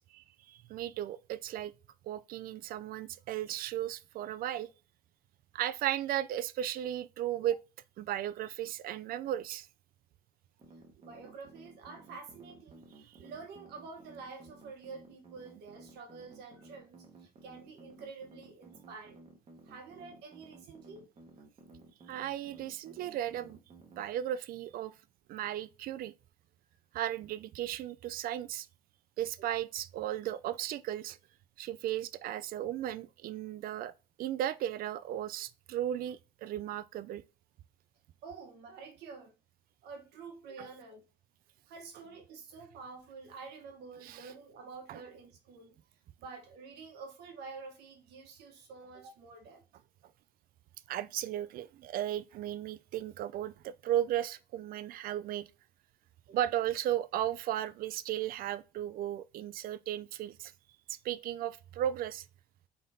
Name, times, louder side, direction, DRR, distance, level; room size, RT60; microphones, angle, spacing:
voice 1, 0.1-1.7 2.0-4.7 5.5-7.6 8.0-9.7 13.1-13.2 22.1-23.6 24.0-24.9 25.3-26.1 26.9-28.7 29.2-31.2 31.6-33.9 34.2-37.2 44.0-44.2 44.9-45.0 50.9-55.5 56.3-60.5 60.9-62.3, right 12 dB, 60° right, 0.4 m, -35 dB
sound 1, 10.6-24.0, right 3 dB, 40° right, 1.1 m, -55 dB
voice 2, 10.9-19.2 19.6-21.1 38.2-39.3 39.8-41.0 41.7-45.7 46.2-49.6, right 4 dB, 80° right, 1.2 m, -48 dB
3.9 x 3.5 x 2.6 m
cardioid pair, 110°, 17 cm